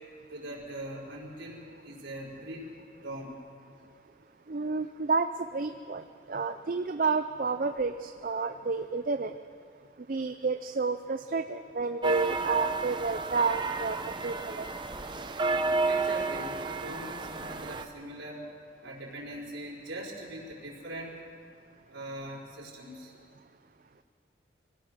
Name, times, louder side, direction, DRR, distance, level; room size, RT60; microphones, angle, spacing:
voice 1, 0.3-2.7 3.0-3.3 15.8-18.4 18.8-21.2 21.9-23.1, right 1 dB, 85° right, -4 dB, 4.8 m, -41 dB
voice 2, 4.5-9.3 10.1-14.7, right 4 dB, 45° right, 9 dB, 0.5 m, -30 dB
sound 1, 12.0-17.8, right 3 dB, 25° right, 0.8 m, -31 dB
25.0 x 17.5 x 6.2 m, 2.3 s
head